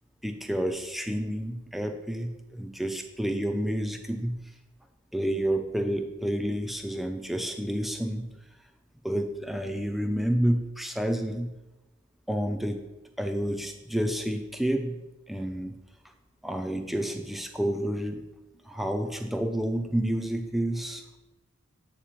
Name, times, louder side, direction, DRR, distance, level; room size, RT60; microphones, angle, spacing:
voice 1, 0.2-4.4 5.1-8.3 9.0-11.5 12.3-12.8 13.2-15.0 15.3-15.7 16.4-18.2 18.7-21.2, equal, ahead, 5 dB, 0.4 m, -29 dB
7.4 x 2.9 x 5.0 m, 1.0 s
head